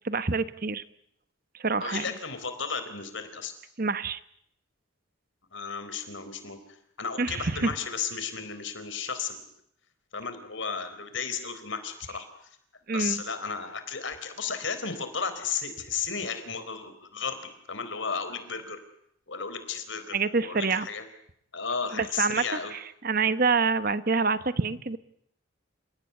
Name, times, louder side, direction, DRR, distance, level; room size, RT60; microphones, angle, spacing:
voice 1, 0.0-0.8 1.6-2.0 3.8-4.2 7.2-7.7 12.9-13.2 20.1-20.9 21.9-22.4 22.7-25.0, right 4 dB, 45° right, 14 dB, 1.0 m, -26 dB
voice 2, 1.8-3.5 5.5-6.6 7.0-9.5 10.1-12.3 12.9-17.4 17.7-18.8 19.3-21.0 21.5-22.7, left 6 dB, 65° left, 10 dB, 4.1 m, -34 dB
29.5 x 17.5 x 9.6 m, 0.72 s
head